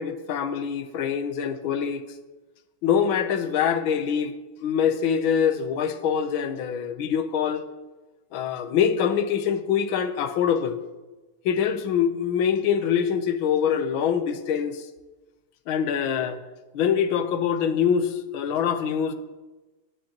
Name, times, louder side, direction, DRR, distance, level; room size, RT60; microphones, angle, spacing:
voice 1, 0.0-2.0 2.8-4.3 4.6-7.6 8.3-10.8 11.4-14.9 15.7-16.4 16.7-19.1, left 8 dB, 70° left, 7 dB, 1.7 m, -24 dB
25.0 x 10.5 x 3.1 m, 1.2 s
omnidirectional pair, 2.4 m